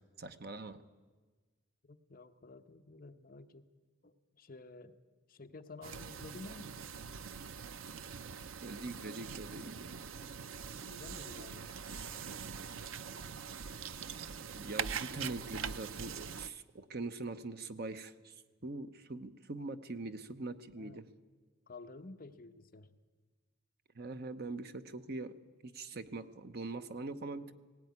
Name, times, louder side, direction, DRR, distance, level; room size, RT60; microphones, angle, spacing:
voice 1, 0.2-0.8 8.6-10.1 14.5-21.0 23.9-25.4 25.6-27.5, right 3 dB, 50° right, 10 dB, 0.9 m, -43 dB
voice 2, 1.9-3.7 4.0-5.0 5.3-6.8 10.8-12.4 20.7-21.1 21.7-23.0, left 2 dB, 45° left, 6 dB, 0.9 m, -52 dB
sound 1, 5.8-16.5, right 7 dB, 75° right, 0.6 m, -43 dB
17.5 x 17.5 x 9.6 m, 1.4 s
head